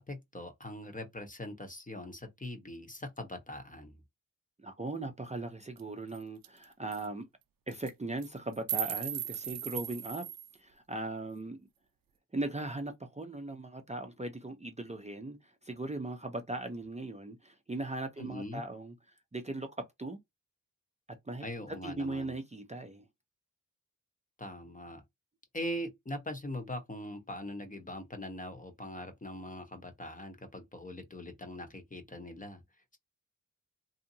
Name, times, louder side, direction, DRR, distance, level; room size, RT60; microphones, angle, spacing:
voice 1, 0.0-4.0 18.2-18.6 21.4-22.3 24.4-25.0 25.5-32.6, left 1 dB, 25° left, 1.1 m, -41 dB
voice 2, 4.6-7.3 7.7-11.6 12.3-20.2 21.3-23.1, right 2 dB, 20° right, 0.7 m, -39 dB
sound 1, 5.8-5.9 6.1-6.2 6.4-6.6 6.9-7.0 7.7-7.9 8.2-10.5, right 11 dB, 75° right, 0.5 m, -37 dB
2.8 x 2.5 x 2.7 m
cardioid pair, 40°, 35 cm